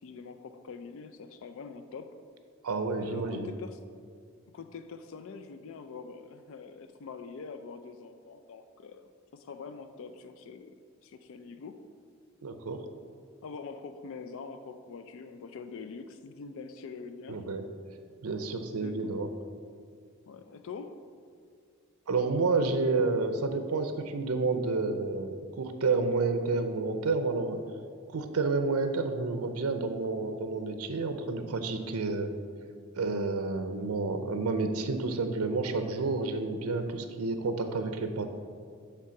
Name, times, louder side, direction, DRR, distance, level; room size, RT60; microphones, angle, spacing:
voice 1, 0.0-2.2 3.0-3.8 4.5-9.0 9.3-10.7 11.0-11.8 13.4-17.5 18.8-19.2 20.3-21.0, left 5 dB, 65° left, 8 dB, 0.4 m, -44 dB
voice 2, 2.6-3.5 12.4-12.8 17.3-17.6 18.2-19.3 22.1-27.6 28.1-32.3 33.0-38.2, right 3 dB, 85° right, 7 dB, 0.5 m, -30 dB
7.5 x 3.5 x 5.7 m, 2.1 s
head